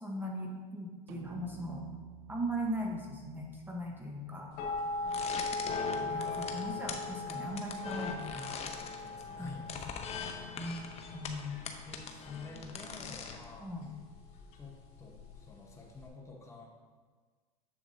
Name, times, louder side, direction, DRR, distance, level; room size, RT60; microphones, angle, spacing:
voice 1, 0.0-1.9 2.3-4.5 5.9-8.6 9.4-9.8 10.6-11.7 13.6-13.9, equal, 10° right, -1 dB, 1.0 m, -39 dB
sound 1, 1.1-5.6, right 7 dB, 60° right, 0.7 m, -51 dB
sound 2, 4.6-16.1, left 3 dB, 55° left, 2.1 m, -40 dB
voice 2, 4.9-5.3 8.3-9.9 10.2-10.5 11.8-13.8 14.5-16.7, left 3 dB, 15° left, -1 dB, 1.1 m, -50 dB
sound 3, 5.1-13.5, left 5 dB, 30° left, 0.8 m, -42 dB
7.1 x 7.0 x 2.7 m, 1.5 s
hypercardioid pair, 100°, 20 cm